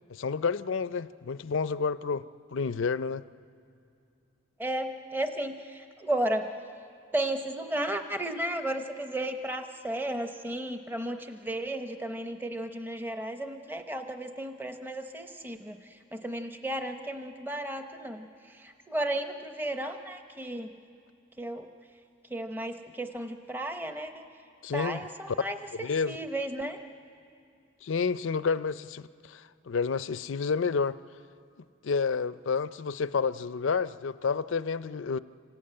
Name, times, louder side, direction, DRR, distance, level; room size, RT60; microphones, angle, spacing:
voice 1, 0.1-2.2 2.5-3.2 24.6-25.0 25.8-26.3 27.8-31.0 31.8-35.2, left 5 dB, 70° left, 15 dB, 0.5 m, -30 dB
voice 2, 4.6-6.5 7.1-20.7 21.4-21.7 22.3-24.3 24.7-25.6 26.1-26.8, right 1 dB, 10° right, 6 dB, 0.7 m, -34 dB
26.5 x 18.0 x 8.8 m, 2.5 s
head